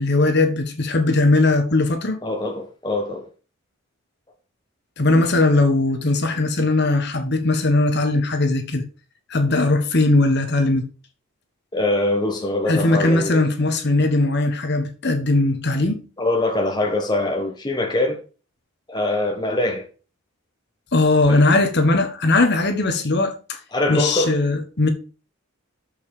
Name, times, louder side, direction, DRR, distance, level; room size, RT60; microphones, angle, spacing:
voice 1, 0.0-2.2 5.0-8.9 9.3-10.9 12.7-16.0 20.9-23.6 23.9-24.9, left 2 dB, 50° left, 1.3 m, -19 dB
voice 2, 2.2-3.3 11.7-13.4 16.2-18.2 18.9-19.9 21.3-21.4 23.7-24.4, left 2 dB, 20° left, 1.2 m, -23 dB
6.8 x 5.5 x 6.6 m
head